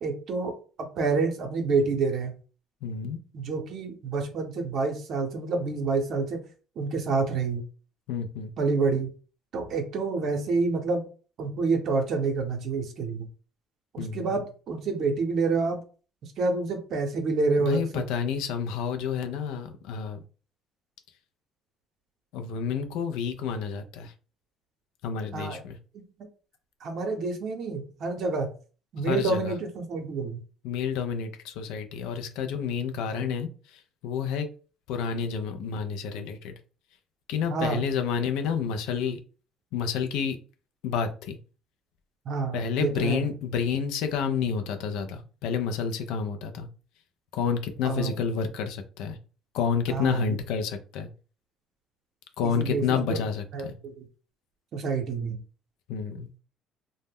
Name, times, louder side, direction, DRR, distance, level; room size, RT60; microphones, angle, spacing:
voice 1, 0.0-0.5 0.8-2.4 3.3-6.4 6.8-7.6 8.6-9.1 9.5-11.0 11.4-13.3 13.9-15.8 16.4-18.0 25.3-25.6 26.8-28.5 28.9-30.4 37.5-37.9 42.3-43.2 47.8-48.1 49.9-50.4 52.6-53.2 53.5-54.0 54.7-55.4, right 4 dB, 60° right, 3 dB, 0.6 m, -28 dB
voice 2, 2.8-3.2 8.1-8.5 14.0-14.3 17.7-20.2 22.3-24.1 25.0-25.8 29.1-29.6 30.6-34.5 34.9-36.5 37.3-39.2 39.7-40.4 40.8-41.4 42.5-46.7 47.3-49.2 49.5-51.1 52.4-53.7 55.9-56.3, left 6 dB, 75° left, 7 dB, 0.4 m, -29 dB
2.0 x 2.0 x 3.4 m, 0.37 s
hypercardioid pair, 65°, 0 cm